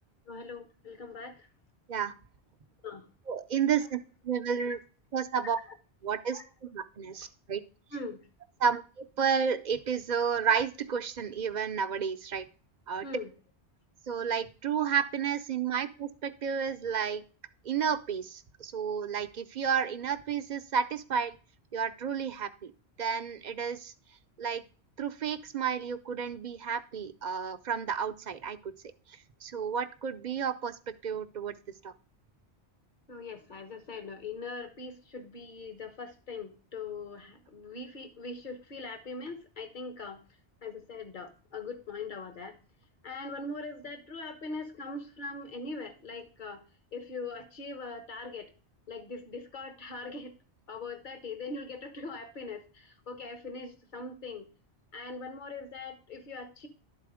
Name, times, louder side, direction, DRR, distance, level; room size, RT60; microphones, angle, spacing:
voice 1, 0.3-1.5 2.8-3.0 4.6-4.8 6.3-6.4 7.9-8.2 13.0-13.3 33.1-40.2 40.6-42.5 43.0-46.6 46.9-48.5 48.9-50.3 50.7-54.4 54.9-56.7, left 3 dB, 45° left, 6 dB, 1.3 m, -41 dB
voice 2, 3.3-4.0 4.2-4.8 5.1-5.6 6.0-7.6 8.6-12.5 12.9-13.1 14.1-17.2 17.6-21.3 21.7-22.7 23.0-23.9 24.4-24.6 25.0-28.7 29.4-31.5 31.8-31.9, right 7 dB, 50° right, 11 dB, 0.6 m, -31 dB
11.5 x 4.1 x 4.9 m, 0.37 s
omnidirectional pair, 1.1 m